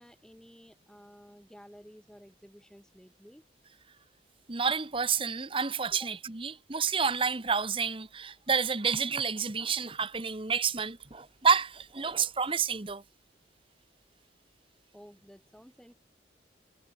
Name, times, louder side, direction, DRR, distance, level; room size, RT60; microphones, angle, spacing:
voice 1, 0.0-3.4 5.9-6.1 14.9-15.9, equal, 5° left, 5.1 m, -53 dB
voice 2, 4.5-13.0, right 5 dB, 30° right, 1.1 m, -29 dB
head